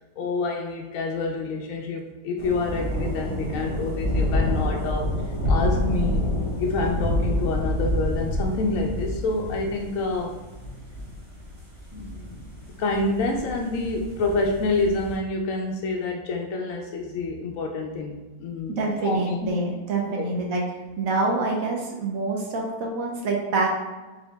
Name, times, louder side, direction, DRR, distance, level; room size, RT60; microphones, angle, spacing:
voice 1, 0.2-6.3 6.6-10.4 11.9-12.4 12.8-19.5 20.2-20.3, left 3 dB, 70° left, 1 dB, 0.9 m, -28 dB
sound 1, 2.4-15.2, left 1 dB, 20° right, 1.3 m, -28 dB
voice 2, 18.7-20.6 21.0-23.7, right 3 dB, 65° right, -1 dB, 1.2 m, -26 dB
4.9 x 2.7 x 3.4 m, 1.2 s
omnidirectional pair, 1.6 m